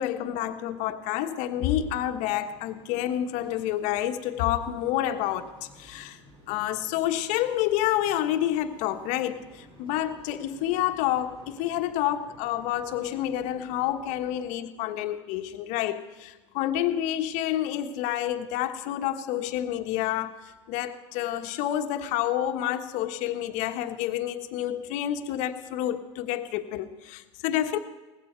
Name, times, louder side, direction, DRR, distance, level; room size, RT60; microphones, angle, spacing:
voice 1, 0.0-6.2 6.5-27.8, left 12 dB, 55° left, 7 dB, 1.4 m, -29 dB
sound 1, 1.5-14.5, right 1 dB, 35° right, 4.9 m, -54 dB
19.0 x 16.0 x 4.6 m, 1.2 s
hypercardioid pair, 100°, 15 cm